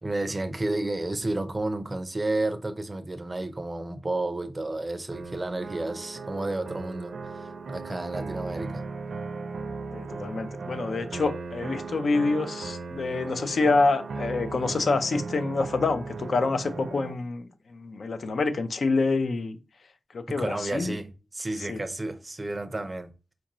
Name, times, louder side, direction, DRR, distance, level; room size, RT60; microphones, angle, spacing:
voice 1, 0.0-8.9 20.3-23.1, right 2 dB, 25° right, 0.4 m, -31 dB
sound 1, 5.1-17.1, right 4 dB, 85° right, 0.4 m, -37 dB
voice 2, 9.9-19.6 20.1-21.0 21.7-21.8, left 3 dB, 65° left, 0.4 m, -27 dB
4.4 x 2.5 x 2.9 m
wide cardioid pair, 125°, 0 cm